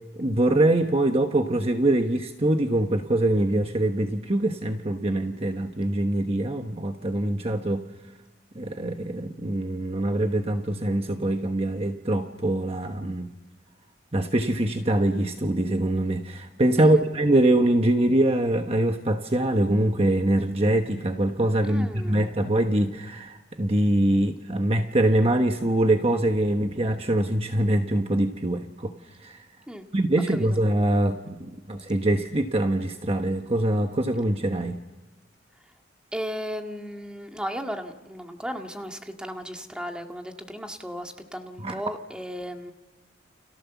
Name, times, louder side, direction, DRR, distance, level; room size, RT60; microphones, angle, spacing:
voice 1, 0.2-7.9 8.5-13.3 14.1-28.9 29.2-29.4 29.9-34.8 41.6-41.8, right 1 dB, 30° right, 5 dB, 1.1 m, -24 dB
voice 2, 21.7-22.2 29.7-29.9 30.3-30.5 36.1-42.7, equal, 5° right, 4 dB, 1.9 m, -35 dB
29.5 x 27.5 x 7.1 m, 1.2 s
head